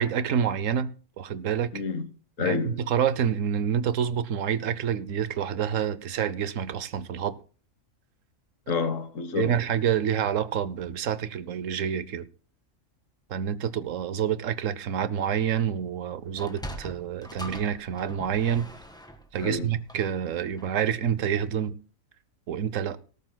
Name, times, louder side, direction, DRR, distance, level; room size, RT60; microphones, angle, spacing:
voice 1, 0.0-1.7 2.4-7.4 9.3-12.3 13.3-18.7 19.3-21.8 22.5-23.0, right 8 dB, 70° right, 1.1 m, -27 dB
voice 2, 1.7-2.1 2.4-2.8 8.7-9.5 19.4-19.7, left 5 dB, 70° left, 1.5 m, -28 dB
Sliding door, 16.3-20.9, equal, 5° left, 1.5 m, -42 dB
18.0 x 13.5 x 2.2 m
omnidirectional pair, 1.4 m